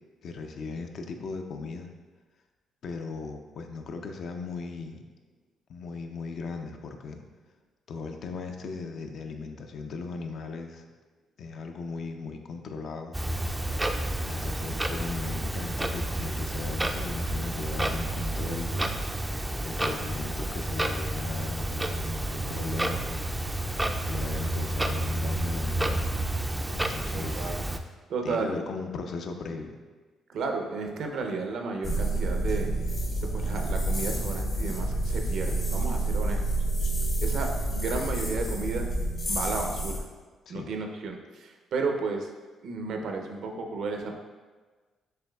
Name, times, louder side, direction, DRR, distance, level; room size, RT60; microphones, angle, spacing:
voice 1, 0.2-1.9 2.8-5.0 5.7-7.2 7.9-10.8 11.4-13.2 14.2-18.9 19.6-23.2 24.0-26.1 26.7-27.5 28.2-29.8 40.5-40.7, left 4 dB, 65° left, 5 dB, 0.4 m, -37 dB
Clock, 13.1-27.8, right 1 dB, 10° right, 0.3 m, -30 dB
voice 2, 27.1-27.5 28.1-28.6 30.3-32.7 33.2-36.6 37.2-38.9 39.3-40.0 40.5-42.3 42.6-44.1, right 4 dB, 70° right, 3 dB, 0.6 m, -33 dB
sound 1, 31.8-40.0, right 2 dB, 45° left, 0.9 m, -28 dB
6.8 x 3.1 x 2.3 m, 1.3 s
cardioid pair, 90°, 0 cm